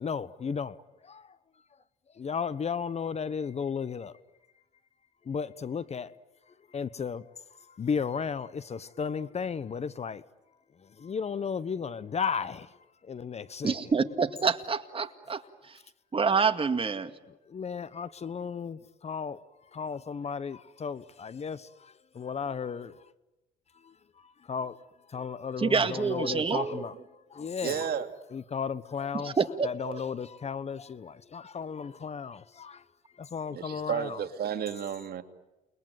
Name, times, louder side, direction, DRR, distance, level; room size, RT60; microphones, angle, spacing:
voice 1, 0.0-1.4 2.1-4.2 5.2-6.1 6.7-10.2 10.8-13.8 17.5-19.4 19.7-23.1 23.7-24.8 25.1-27.9 28.3-29.4 29.6-32.8 33.1-34.2, left 6 dB, 35° left, 1.0 m, -35 dB
voice 2, 13.6-15.8 16.1-17.1 25.6-26.8 28.0-28.1 29.2-30.0, right 5 dB, 30° right, 2.1 m, -27 dB
voice 3, 27.6-28.1 33.5-35.2, right 8 dB, 55° right, 2.4 m, -32 dB
29.5 x 21.5 x 9.3 m
supercardioid pair, 85°, 19 cm